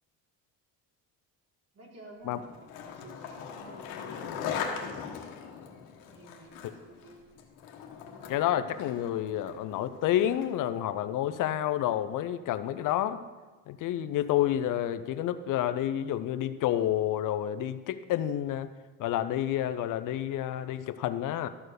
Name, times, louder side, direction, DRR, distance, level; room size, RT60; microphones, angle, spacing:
voice 1, 1.7-3.9 6.1-7.3, right 2 dB, 50° right, -2 dB, 3.1 m, -51 dB
Skateboard, 2.3-10.7, left 7 dB, 90° left, 1.3 m, -40 dB
voice 2, 8.3-13.2 13.7-18.7 19.0-21.5, left 12 dB, 65° left, 11 dB, 0.6 m, -29 dB
12.5 x 4.4 x 6.6 m, 1.3 s
cardioid pair, 100°, 34 cm